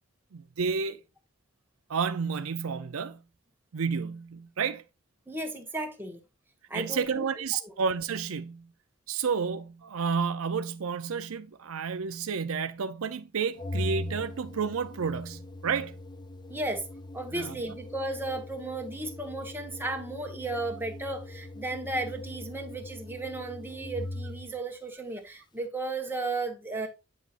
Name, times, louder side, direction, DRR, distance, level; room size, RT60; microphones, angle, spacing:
voice 1, 0.3-1.0 1.9-3.2 3.7-4.8 6.7-8.7 9.1-16.0 17.3-17.7, right 6 dB, 70° right, 0.5 m, -31 dB
voice 2, 5.3-6.2 6.7-7.3 7.6-7.7 16.5-16.9 17.1-26.9, right 2 dB, 10° right, 1.4 m, -34 dB
Organ, 13.6-24.6, left 1 dB, 20° left, 0.4 m, -40 dB
8.5 x 6.1 x 2.5 m
head